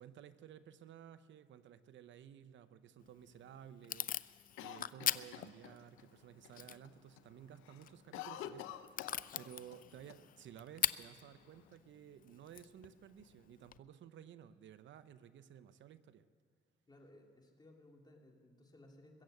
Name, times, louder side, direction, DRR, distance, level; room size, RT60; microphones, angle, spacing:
voice 1, 0.0-16.2, right 9 dB, 70° right, 13 dB, 0.7 m, -55 dB
Packing tape duct tape / Tearing, 3.0-13.8, left 10 dB, 45° left, 0.4 m, -43 dB
Cough, 4.6-6.1 6.4-6.5 6.8-7.3 7.5-9.8 10.1-10.2 10.9-11.7, left 11 dB, 90° left, 0.7 m, -48 dB
voice 2, 16.9-19.2, left 1 dB, 20° left, 1 dB, 2.7 m, -61 dB
21.5 x 7.8 x 7.8 m, 2.1 s
cardioid pair, 90°, 20 cm